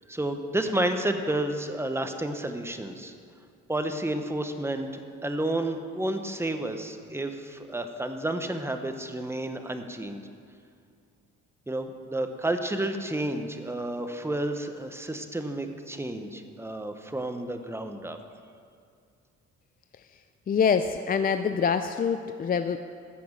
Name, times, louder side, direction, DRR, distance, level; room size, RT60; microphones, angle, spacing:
voice 1, 0.1-3.1 3.7-10.2 11.7-18.2, right 1 dB, 10° right, 6 dB, 1.0 m, -31 dB
voice 2, 20.5-22.8, left 6 dB, 30° left, 8 dB, 0.4 m, -25 dB
14.0 x 6.0 x 7.4 m, 2.3 s
cardioid pair, 90°, 30 cm